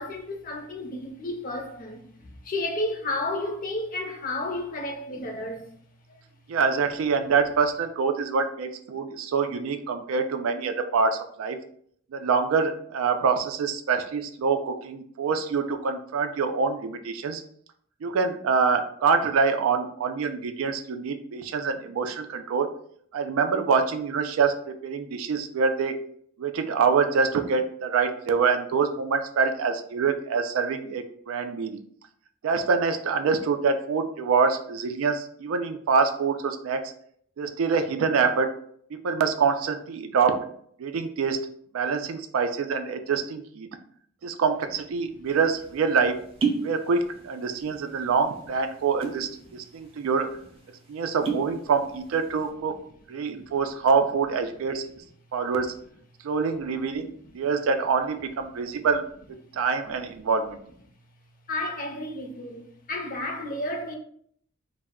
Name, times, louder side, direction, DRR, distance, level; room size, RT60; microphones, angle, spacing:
voice 1, 0.0-2.0 2.5-5.6 61.5-62.6 62.9-64.0, left 1 dB, 45° left, 0.5 m, -31 dB
voice 2, 6.5-11.6 12.1-17.4 18.0-22.7 23.1-24.5 24.8-25.9 26.4-31.8 32.4-36.8 37.4-38.5 38.9-40.4 40.8-41.4 41.7-43.7 44.2-46.2 46.6-50.3 50.9-52.8 53.1-54.8 55.3-55.7 56.2-57.1 57.3-59.0 59.5-60.6, right 5 dB, 90° right, 0.4 m, -25 dB
sound 1, 45.3-45.4 46.2-46.7 47.0-47.6 47.9-48.1 48.8-49.3 49.8-49.9 50.1-50.3 51.0-51.6 52.0-52.4, right 5 dB, 30° right, 0.4 m, -28 dB
2.2 x 2.0 x 3.5 m
head